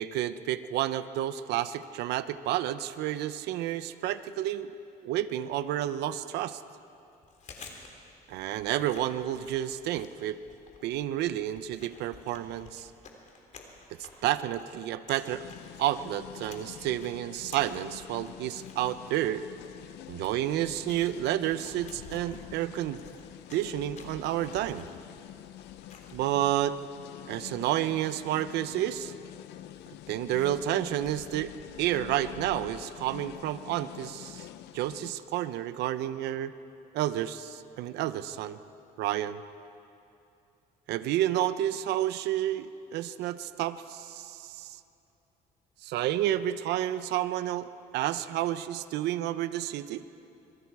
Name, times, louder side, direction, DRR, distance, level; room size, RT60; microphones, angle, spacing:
voice 1, 0.0-4.7 5.0-6.6 8.3-10.4 10.8-12.9 14.0-15.4 15.8-19.4 20.1-23.0 23.5-24.9 26.1-26.8 27.3-29.1 30.1-31.5 31.8-34.5 34.7-36.5 36.9-38.6 39.0-39.4 40.9-44.8 45.8-50.0, right 12 dB, 80° right, 13 dB, 0.8 m, -30 dB
Chewing mastication, 7.1-26.6, left 4 dB, 45° left, 3.2 m, -53 dB
sound 1, 15.3-35.1, left 13 dB, 80° left, 0.7 m, -46 dB
26.0 x 22.5 x 4.8 m, 2.7 s
cardioid pair, 110°, 17 cm